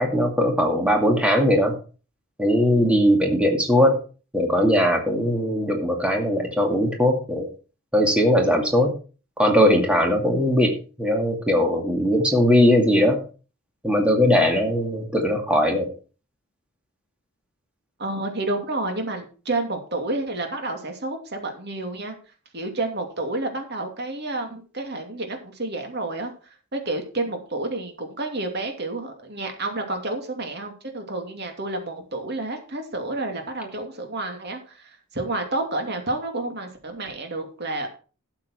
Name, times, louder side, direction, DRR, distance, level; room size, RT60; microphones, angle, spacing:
voice 1, 0.0-1.8 2.4-4.0 4.3-7.5 7.9-8.9 9.4-13.2 13.8-15.9, equal, 5° right, 1 dB, 2.3 m, -20 dB
voice 2, 18.0-22.2 22.5-26.3 26.7-37.9, right 2 dB, 45° right, 4 dB, 2.7 m, -30 dB
12.5 x 7.7 x 4.6 m, 0.37 s
head